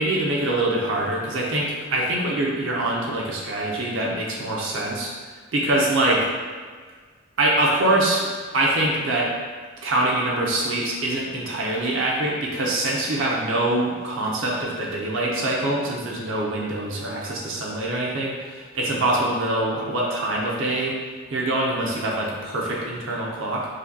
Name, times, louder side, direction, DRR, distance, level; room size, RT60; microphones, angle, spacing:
voice 1, 0.0-5.1 5.5-6.3 7.4-9.3 9.8-20.9 21.3-23.7, right 1 dB, 70° right, -3 dB, 0.6 m, -24 dB
5.0 x 2.2 x 2.7 m, 1.6 s
head